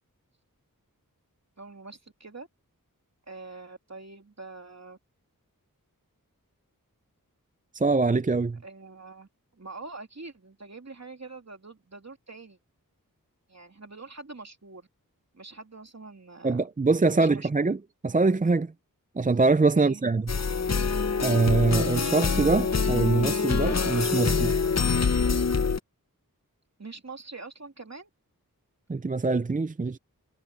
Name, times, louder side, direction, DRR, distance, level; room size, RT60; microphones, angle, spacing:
voice 1, 1.6-2.5 3.3-5.0 8.6-9.3 9.6-12.6 13.5-14.9 15.3-16.7 17.1-17.7 19.7-20.0 26.8-28.1, right 3 dB, 50° right, 3.0 m, -44 dB
voice 2, 7.7-8.6 16.4-17.8 18.0-18.7 19.2-20.3 21.2-24.6 28.9-30.0, right 3 dB, 25° right, 0.5 m, -24 dB
sound 1, 20.3-25.8, left 5 dB, 50° left, 0.9 m, -25 dB
wide cardioid pair, 65°, 35 cm